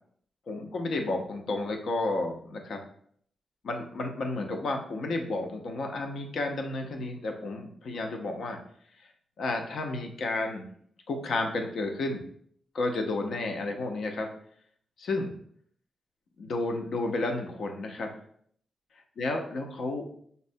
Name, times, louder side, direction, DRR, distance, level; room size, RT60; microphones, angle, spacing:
voice 1, 0.5-2.8 3.6-8.6 9.4-10.7 11.1-12.2 12.7-14.3 15.0-15.3 16.4-18.1 19.2-20.1, left 2 dB, 60° left, 3 dB, 0.6 m, -31 dB
5.3 x 2.1 x 2.6 m, 0.63 s
wide cardioid pair, 160°, 0 cm